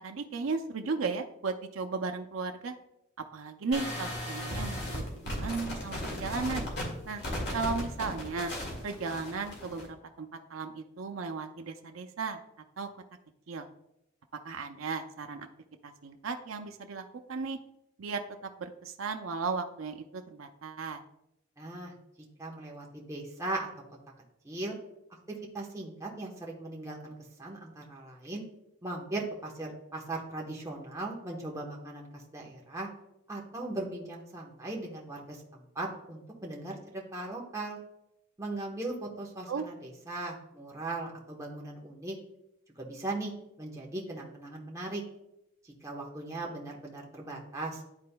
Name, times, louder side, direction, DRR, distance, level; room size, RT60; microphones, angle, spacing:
voice 1, 0.0-2.7 3.3-6.7 7.1-7.2 7.5-8.5 8.8-9.9 10.2-12.4 12.8-12.9 13.5-13.7 14.4-15.5 15.8-17.6 18.0-18.2 18.6-21.0 39.5-39.6, right 4 dB, 90° right, 5 dB, 0.5 m, -35 dB
sound 1, 3.7-9.9, left 1 dB, 60° left, 2.0 m, -36 dB
voice 2, 21.6-21.9 22.4-23.7 24.4-24.8 25.5-27.1 27.4-28.4 28.8-32.9 33.3-37.8 38.4-42.2 42.8-43.3 43.6-45.0 45.8-47.8, right 2 dB, 15° right, -3 dB, 1.1 m, -38 dB
11.5 x 4.2 x 2.2 m, 0.82 s
head